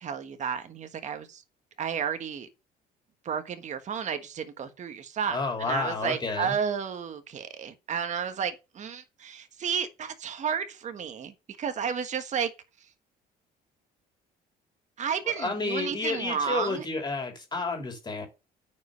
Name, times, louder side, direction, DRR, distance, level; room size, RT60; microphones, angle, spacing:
voice 1, 0.0-1.4 1.8-2.5 3.2-12.5 15.0-16.8, right 7 dB, 45° right, 1.4 m, -32 dB
voice 2, 5.3-6.5 15.3-18.3, left 3 dB, 25° left, 3.3 m, -31 dB
9.1 x 5.4 x 6.3 m
cardioid pair, 110°, 17 cm